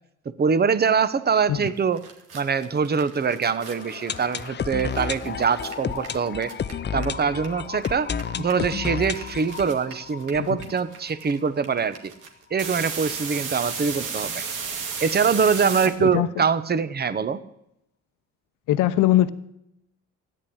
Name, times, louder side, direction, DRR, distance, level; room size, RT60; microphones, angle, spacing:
voice 1, 0.2-2.0 2.3-6.5 6.9-8.1 8.4-12.1 12.5-14.4 15.0-17.4, right 6 dB, 35° right, 14 dB, 1.0 m, -23 dB
sound 1, 1.7-1.8 2.0-7.5 7.7-15.9, right 5 dB, 85° right, 2.4 m, -34 dB
sound 2, 3.6-11.4 11.6-11.7 11.9-12.0 12.5-12.6, left 7 dB, 35° left, 0.7 m, -32 dB
voice 2, 16.0-16.4 18.7-19.3, left 13 dB, 85° left, 13 dB, 0.8 m, -21 dB
14.0 x 10.0 x 8.8 m, 0.80 s
cardioid pair, 90°, 30 cm